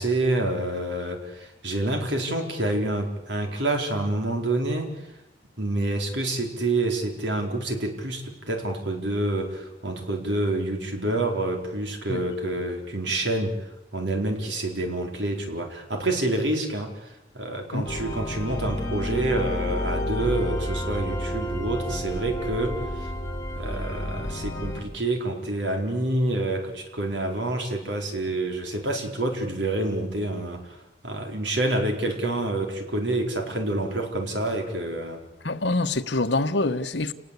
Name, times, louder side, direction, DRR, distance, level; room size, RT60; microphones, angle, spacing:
voice 1, 0.0-4.9 5.6-13.6 13.9-23.1 23.6-30.8 31.0-35.2, right 1 dB, 85° right, 4.5 m, -27 dB
sound 1, 17.8-24.8, equal, 20° left, 4.7 m, -30 dB
voice 2, 35.4-37.1, left 2 dB, 80° left, 1.4 m, -25 dB
29.5 x 19.0 x 8.5 m
head